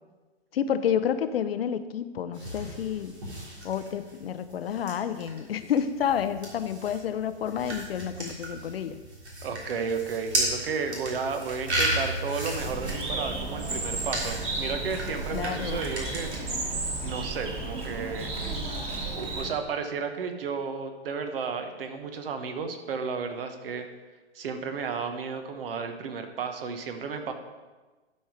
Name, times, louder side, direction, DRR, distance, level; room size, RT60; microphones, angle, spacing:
voice 1, 0.5-3.1 3.6-9.0 15.3-15.8, left 8 dB, 65° left, 11 dB, 0.7 m, -29 dB
sound 1, 2.3-16.4, right 1 dB, 80° right, 3.4 m, -35 dB
voice 2, 9.4-16.7 17.0-18.3 19.1-23.9 24.3-27.3, right 5 dB, 60° right, 7 dB, 1.3 m, -33 dB
Bird, 12.6-19.5, right 2 dB, 20° right, 1.9 m, -33 dB
11.5 x 5.5 x 4.8 m, 1.2 s
hypercardioid pair, 120°, 33 cm